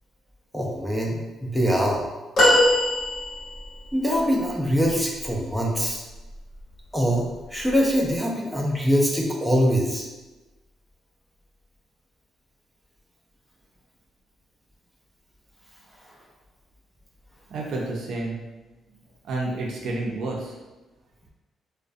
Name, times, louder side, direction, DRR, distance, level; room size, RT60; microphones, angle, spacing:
voice 1, 0.5-2.0 3.9-6.0 6.9-10.1, equal, ahead, -2 dB, 0.5 m, -23 dB
sound 1, 2.4-3.8 6.2-6.3 7.7-7.8, left 1 dB, 55° left, 0.8 m, -20 dB
voice 2, 17.5-18.4 19.3-20.5, right 2 dB, 70° right, -2 dB, 0.5 m, -29 dB
2.3 x 2.1 x 2.5 m, 1.1 s
cardioid pair, 90°, 0 cm